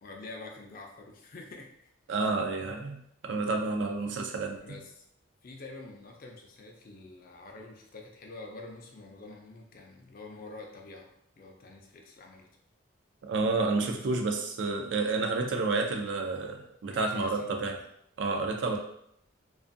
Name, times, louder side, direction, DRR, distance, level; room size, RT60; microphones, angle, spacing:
voice 1, 0.0-1.9 4.6-5.0 5.4-11.1 11.4-12.5 13.9-14.2 16.9-17.5 18.4-18.5, left 3 dB, 45° left, 1 dB, 0.4 m, -46 dB
voice 2, 2.1-4.7 13.2-17.8 18.2-18.8, right 3 dB, 60° right, 3 dB, 0.4 m, -30 dB
2.5 x 2.3 x 2.5 m, 0.72 s
head